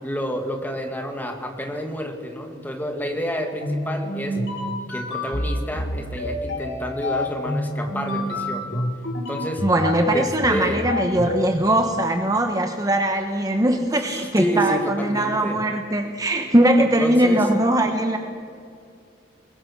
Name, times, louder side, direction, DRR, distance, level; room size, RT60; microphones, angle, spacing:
voice 1, 0.0-4.4 4.9-8.9 9.3-9.6 10.1-10.9 14.0-15.6 16.8-17.5, equal, 10° left, 3 dB, 2.4 m, -29 dB
sound 1, 3.6-11.5, left 1 dB, 85° left, 3.4 m, -28 dB
voice 2, 9.6-18.2, right 1 dB, 20° right, 5 dB, 1.0 m, -20 dB
23.0 x 21.0 x 6.1 m, 2.5 s
head